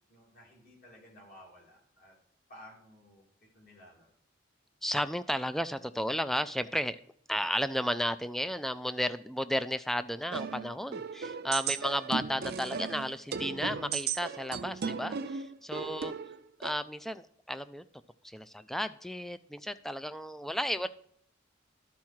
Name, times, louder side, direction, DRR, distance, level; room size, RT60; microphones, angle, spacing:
voice 1, 0.1-2.1 2.5-3.2 3.5-4.1 11.7-11.8 20.7-20.8, left 1 dB, 50° left, -3 dB, 3.3 m, -55 dB
voice 2, 4.8-7.0 7.3-16.1 16.6-17.8 18.2-20.9, equal, ahead, 13 dB, 0.3 m, -33 dB
sound 1, 10.3-16.7, right 6 dB, 55° right, 0.5 m, -36 dB
12.0 x 4.7 x 4.5 m, 0.68 s
head